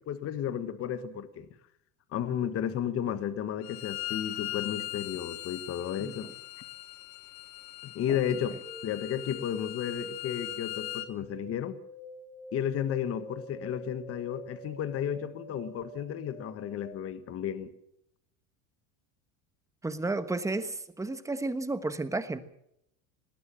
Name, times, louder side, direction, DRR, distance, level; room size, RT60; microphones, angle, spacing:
voice 1, 0.0-1.5 2.1-6.3 7.8-11.8 12.5-17.7, left 9 dB, 35° left, 1.4 m, -33 dB
Bowed string instrument, 3.6-11.1, left 18 dB, 60° left, 1.1 m, -40 dB
voice 2, 6.0-6.3 19.8-22.4, right 2 dB, 5° right, 1.2 m, -32 dB
sound 1, 8.6-16.9, equal, 10° left, 6.5 m, -47 dB
19.5 x 17.5 x 7.5 m
supercardioid pair, 145°, 42 cm